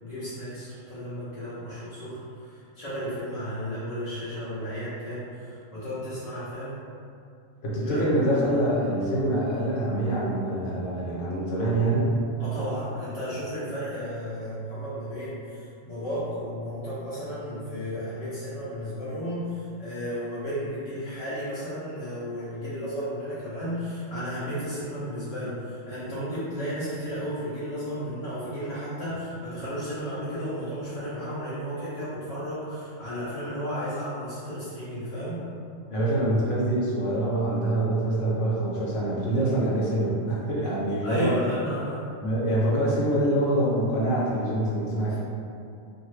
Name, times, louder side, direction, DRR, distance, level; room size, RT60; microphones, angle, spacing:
voice 1, 0.0-6.8 7.8-8.0 12.4-35.4 41.0-42.0 45.1-45.2, equal, 40° left, -12 dB, 0.5 m, -33 dB
voice 2, 7.6-12.1 35.9-41.4 42.2-45.2, right 1 dB, 70° left, -6 dB, 1.0 m, -25 dB
2.6 x 2.4 x 3.1 m, 2.5 s
omnidirectional pair, 1.3 m